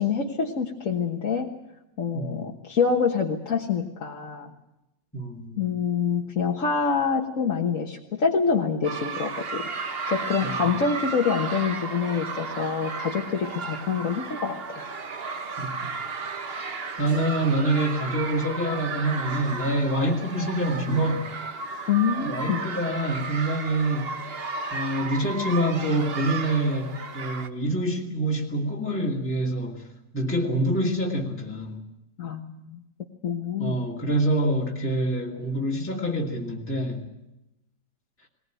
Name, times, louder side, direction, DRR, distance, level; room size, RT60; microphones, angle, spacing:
voice 1, 0.0-1.5 2.0-4.5 5.6-9.7 10.1-14.8 21.9-22.6 32.2-32.8 33.2-33.8, left 6 dB, 45° left, 0 dB, 1.7 m, -26 dB
voice 2, 5.1-5.6 10.4-10.7 15.6-15.8 17.0-21.3 22.2-24.1 24.7-29.9 30.1-31.8 33.6-37.1, right 1 dB, 5° left, -2 dB, 2.4 m, -26 dB
sound 1, 8.8-27.5, right 4 dB, 35° right, 1.3 m, -34 dB
20.0 x 19.5 x 9.2 m, 0.93 s
omnidirectional pair, 2.0 m